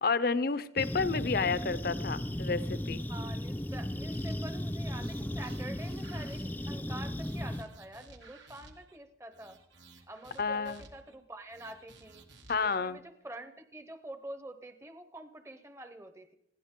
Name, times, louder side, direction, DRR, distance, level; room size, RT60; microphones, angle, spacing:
voice 1, 0.0-3.0 10.4-10.8 12.5-13.0, left 4 dB, 55° left, 14 dB, 0.7 m, -30 dB
sound 1, 0.8-7.6, left 1 dB, 10° left, 0.5 m, -36 dB
voice 2, 3.1-9.6 10.1-12.2 12.6-16.3, right 1 dB, 15° right, 8 dB, 0.8 m, -46 dB
sound 2, 4.1-4.6 4.9-6.8 7.1-9.0 9.3-11.2 11.5-12.8, right 3 dB, 90° right, 2.5 m, -56 dB
21.0 x 16.0 x 3.8 m, 0.82 s
head